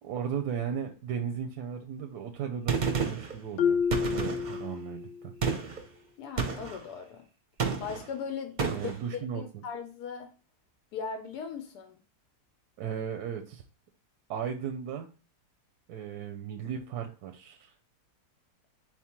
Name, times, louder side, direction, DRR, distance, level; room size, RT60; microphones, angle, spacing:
voice 1, 0.0-5.3 8.7-9.6 12.8-13.6 14.3-15.1 15.9-17.7, right 8 dB, 85° right, 1.2 m, -36 dB
Gunshot gunfire, 2.7-3.3 3.9-4.6 5.4-5.8 6.4-6.8 7.6-8.1 8.6-9.0, right 5 dB, 45° right, 0.6 m, -30 dB
Marimba xylophone, 3.6-5.3, left 7 dB, 70° left, 0.7 m, -29 dB
voice 2, 6.2-7.2 7.8-8.9 9.3-10.3 10.9-11.9, left 6 dB, 85° left, 1.2 m, -38 dB
4.4 x 3.6 x 2.9 m
omnidirectional pair, 1.7 m